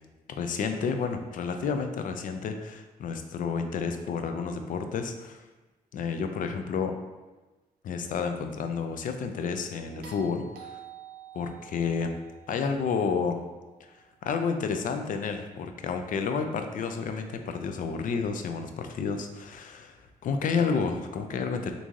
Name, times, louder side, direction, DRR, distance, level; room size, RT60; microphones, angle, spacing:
voice 1, 0.3-5.4 5.9-6.9 7.8-10.8 11.3-12.1 12.5-13.4 13.8-13.9 14.2-21.7, left 5 dB, 65° left, 6 dB, 0.4 m, -30 dB
sound 1, 10.0-14.3 16.5-16.6, right 8 dB, 90° right, 0.4 m, -49 dB
3.0 x 2.6 x 3.6 m, 1.2 s
cardioid pair, 70°, 15 cm